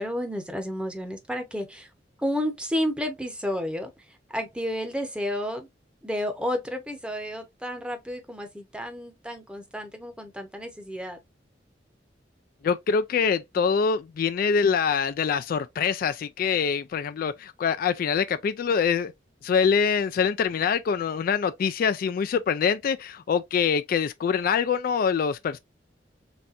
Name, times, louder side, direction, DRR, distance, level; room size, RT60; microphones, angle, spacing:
voice 1, 0.0-1.9 2.2-5.7 6.0-11.2, equal, 5° right, 0.8 m, -31 dB
voice 2, 12.6-19.1 19.4-25.6, left 6 dB, 55° left, 0.3 m, -24 dB
4.1 x 3.3 x 2.5 m
head